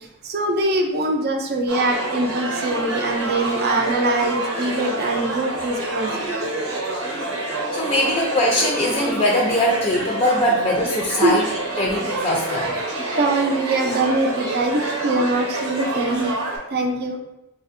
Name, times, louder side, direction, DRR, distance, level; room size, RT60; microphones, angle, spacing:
voice 1, 0.2-6.5 11.2-11.4 13.2-16.3 16.7-17.2, right 2 dB, 50° right, 3 dB, 0.5 m, -23 dB
sound 1, 1.7-16.6, right 2 dB, 85° right, 0.8 m, -27 dB
voice 2, 7.7-12.7, left 1 dB, 30° left, -2 dB, 0.4 m, -21 dB
4.2 x 2.5 x 2.5 m, 0.92 s
head